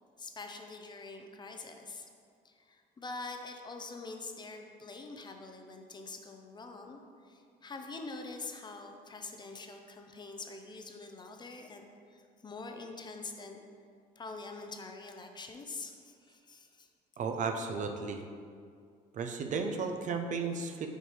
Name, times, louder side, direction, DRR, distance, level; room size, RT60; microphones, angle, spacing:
voice 1, 0.2-2.1 2.4-13.6 14.2-16.9, left 3 dB, 25° left, 4 dB, 0.5 m, -45 dB
voice 2, 17.2-18.2 19.1-20.9, right 5 dB, 45° right, 5 dB, 0.5 m, -34 dB
6.5 x 4.6 x 3.2 m, 2.2 s
cardioid pair, 110°, 17 cm